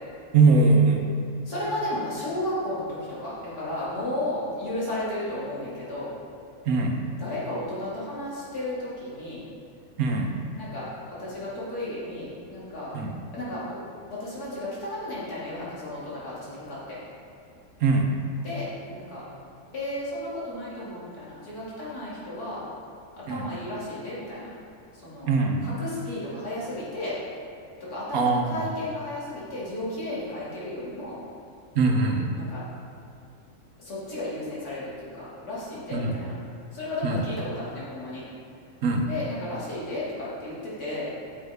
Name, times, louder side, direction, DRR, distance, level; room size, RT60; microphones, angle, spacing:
voice 1, 0.3-1.0 6.7-7.0 10.0-10.3 12.9-13.2 17.8-18.1 23.3-23.5 25.3-25.7 28.1-28.7 31.7-32.3 35.9-36.1 37.0-37.2 38.8-39.1, right 3 dB, 70° right, 2 dB, 1.3 m, -21 dB
voice 2, 1.5-6.1 7.2-9.4 10.6-12.9 13.3-13.8 14.1-17.0 18.4-19.2 19.7-22.6 23.2-24.5 25.0-25.3 25.6-27.2 27.9-31.2 32.4-32.6 33.8-36.3 36.7-38.2 39.1-41.1, left 1 dB, 85° left, -8 dB, 2.9 m, -33 dB
9.2 x 7.6 x 3.5 m, 2.5 s
omnidirectional pair, 1.6 m